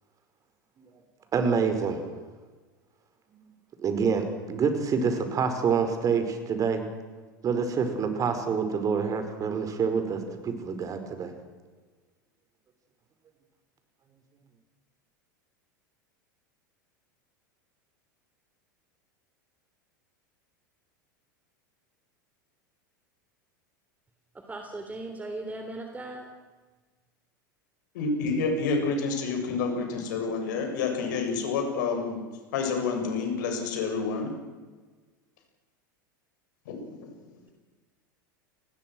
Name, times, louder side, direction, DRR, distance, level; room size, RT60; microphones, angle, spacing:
voice 1, 1.3-2.0 3.8-6.8 7.4-11.3, right 5 dB, 30° right, 8 dB, 5.0 m, -27 dB
voice 2, 24.3-26.3, right 2 dB, 15° right, 4 dB, 3.5 m, -38 dB
voice 3, 27.9-32.2 32.5-34.3 36.7-37.1, left 4 dB, 65° left, 4 dB, 7.4 m, -28 dB
30.0 x 20.5 x 6.3 m, 1.3 s
hypercardioid pair, 85°, 11 cm